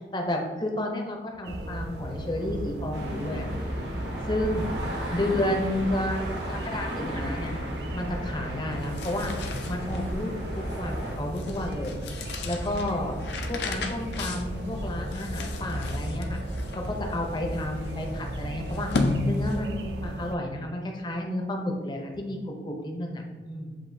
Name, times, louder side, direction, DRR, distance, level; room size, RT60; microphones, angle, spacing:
voice 1, 0.1-3.6 4.3-4.7 5.1-7.5 7.9-9.3 9.7-12.0 12.4-13.2 13.5-16.4 16.7-18.9 19.2-23.8, left 1 dB, 25° left, 2 dB, 0.5 m, -31 dB
sound 1, 1.4-20.4, right 1 dB, 70° right, 0.4 m, -36 dB
sound 2, 2.9-11.1, equal, 90° right, 1.1 m, -36 dB
sound 3, 8.7-19.9, left 2 dB, 75° left, 0.5 m, -34 dB
7.6 x 2.6 x 2.6 m, 1.5 s
head